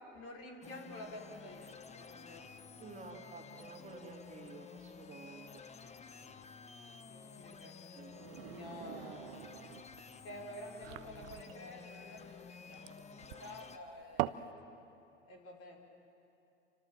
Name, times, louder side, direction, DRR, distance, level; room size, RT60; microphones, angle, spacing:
voice 1, 0.1-2.5 7.1-7.7 8.4-9.2 10.2-12.8 13.4-14.6 15.3-15.8, left 1 dB, 40° left, 0 dB, 5.6 m, -49 dB
sound 1, 0.6-13.8, left 5 dB, 20° left, 1.2 m, -52 dB
voice 2, 2.8-5.6 7.9-8.1, right 4 dB, 20° right, 0 dB, 3.2 m, -51 dB
sound 2, 8.0-14.5, right 17 dB, 50° right, 0.9 m, -43 dB
30.0 x 25.5 x 7.6 m, 2.8 s
hypercardioid pair, 90°, 36 cm